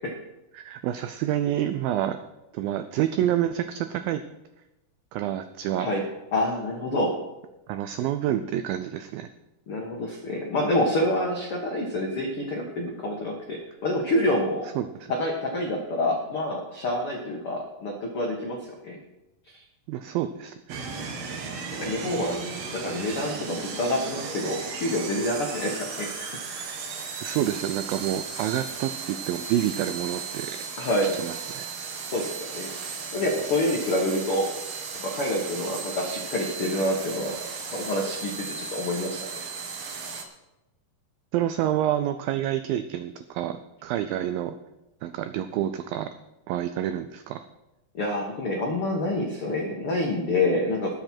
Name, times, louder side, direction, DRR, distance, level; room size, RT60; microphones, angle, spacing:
voice 1, 0.5-2.2 2.5-4.2 5.1-5.9 7.7-9.3 14.8-14.9 19.9-20.8 27.2-30.7 31.1-31.7 41.3-44.6 45.0-46.1 46.5-47.4, right 11 dB, 90° right, 10 dB, 2.0 m, -28 dB
voice 2, 6.3-7.1 9.7-14.7 15.2-18.6 18.8-19.0 19.5-19.6 21.8-22.4 22.7-26.4 30.8-31.1 32.1-34.5 35.0-37.4 37.7-39.2 47.9-50.9, left 1 dB, 75° left, 0 dB, 1.2 m, -27 dB
sound 1, 20.7-40.2, right 5 dB, 65° right, 1.6 m, -35 dB
20.0 x 7.7 x 4.5 m, 0.99 s
omnidirectional pair, 4.8 m